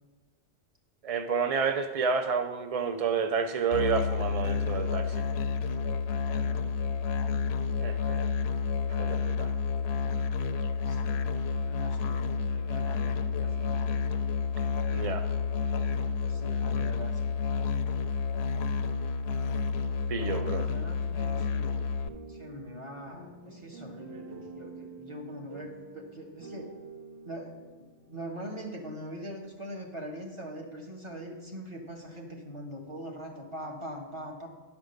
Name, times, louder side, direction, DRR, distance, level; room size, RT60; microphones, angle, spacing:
voice 1, 1.0-5.1 7.8-8.2 9.0-9.5 14.9-15.2 20.1-20.7, right 5 dB, 55° right, 7 dB, 0.4 m, -30 dB
Musical instrument, 3.7-22.1, left 5 dB, 70° left, 0.8 m, -30 dB
voice 2, 6.3-6.7 10.8-11.3 11.6-12.2 12.5-13.8 16.2-17.3 20.2-21.9 22.2-26.7 27.2-34.5, equal, 25° right, 0 dB, 1.4 m, -42 dB
sound 1, 22.0-29.0, right 3 dB, 75° right, 2.1 m, -47 dB
11.0 x 5.2 x 6.5 m, 1.3 s
omnidirectional pair, 1.2 m